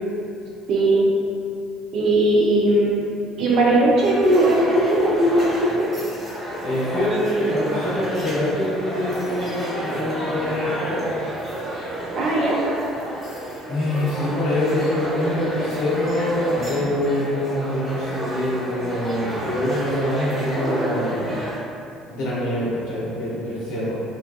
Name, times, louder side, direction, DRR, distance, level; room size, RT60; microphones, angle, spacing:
voice 1, 0.7-1.1 1.9-3.0 3.4-5.8 12.2-12.6, right 1 dB, 50° right, -3 dB, 0.3 m, -18 dB
sound 1, 4.0-21.6, right 1 dB, 15° right, 1.1 m, -30 dB
voice 2, 6.6-11.1 13.7-21.4 22.1-24.0, left 1 dB, 60° left, -7 dB, 0.6 m, -24 dB
2.4 x 2.2 x 2.2 m, 2.5 s
figure-of-eight pair, 55°, 0 cm